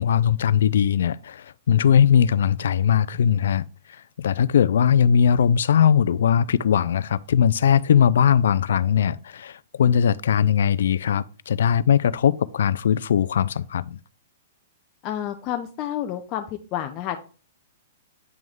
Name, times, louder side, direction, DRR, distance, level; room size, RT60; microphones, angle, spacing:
voice 1, 0.0-14.0, left 8 dB, 80° left, 0.3 m, -20 dB
voice 2, 15.0-17.2, left 11 dB, 35° left, 0.6 m, -29 dB
9.1 x 3.1 x 3.6 m
hypercardioid pair, 145°, 0 cm